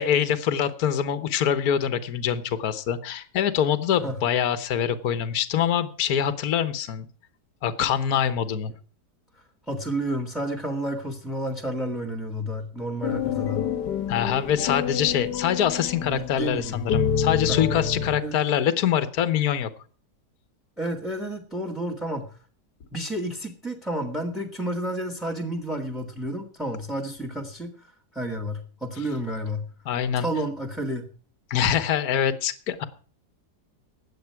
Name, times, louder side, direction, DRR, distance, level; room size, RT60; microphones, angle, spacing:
voice 1, 0.0-7.1 7.6-8.7 14.1-19.7 29.9-30.3 31.5-32.8, left 9 dB, 60° left, 12 dB, 1.5 m, -24 dB
voice 2, 9.7-13.7 16.0-16.9 17.5-17.6 18.2-18.4 20.8-22.4 22.9-29.7 30.1-31.0, right 1 dB, ahead, 6 dB, 1.7 m, -31 dB
sound 1, 13.0-18.2, left 7 dB, 80° left, 1.8 m, -28 dB
16.5 x 10.5 x 4.7 m, 0.41 s
omnidirectional pair, 1.9 m